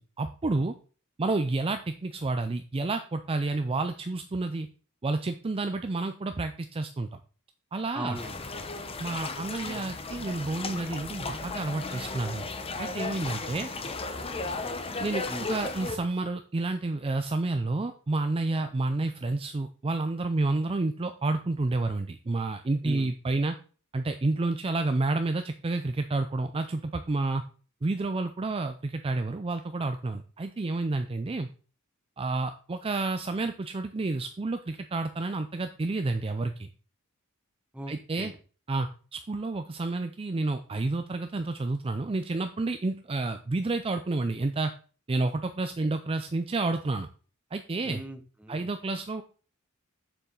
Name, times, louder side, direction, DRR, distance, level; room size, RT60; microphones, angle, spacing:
voice 1, 0.2-0.8 1.2-4.7 5.0-7.2 7.7-8.2 9.0-12.5 12.8-13.7 15.0-23.6 23.9-27.4 27.8-31.5 32.2-36.7 37.9-38.3 38.7-44.7 45.1-47.1 47.5-48.0 48.5-49.2, right 2 dB, 25° right, 7 dB, 0.5 m, -30 dB
voice 2, 7.9-8.8 13.2-13.4 13.7-13.9 15.3-15.5 22.8-23.1 37.7-38.4 47.8-48.7, right 1 dB, 5° right, 7 dB, 0.9 m, -40 dB
sound 1, 8.1-16.0, left 3 dB, 25° left, 0.8 m, -35 dB
6.9 x 6.9 x 3.8 m, 0.38 s
head